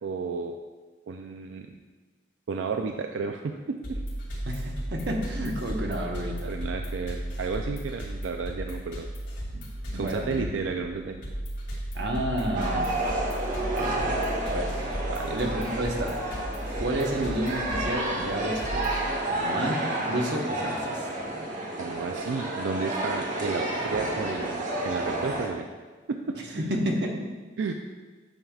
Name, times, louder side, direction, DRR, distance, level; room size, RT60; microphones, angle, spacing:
voice 1, 0.0-0.6 1.1-1.8 2.5-4.0 4.5-4.6 6.5-9.1 9.9-11.2 15.1-15.4 17.2-17.3 21.8-25.7 26.1-26.7 27.6-27.7, right 5 dB, 90° right, 4 dB, 0.4 m, -32 dB
sound 1, 3.8-19.1, right 1 dB, 75° left, 2.2 m, -35 dB
voice 2, 4.4-6.5 9.5-9.6 9.9-10.5 11.9-13.0 13.7-14.2 14.4-14.7 15.3-16.1 16.8-18.9 19.3-21.0 26.6-27.3, right 1 dB, 65° right, 1 dB, 1.0 m, -30 dB
sound 2, 12.5-25.5, right 1 dB, 45° right, 1.1 m, -30 dB
9.1 x 6.8 x 2.4 m, 1.3 s
head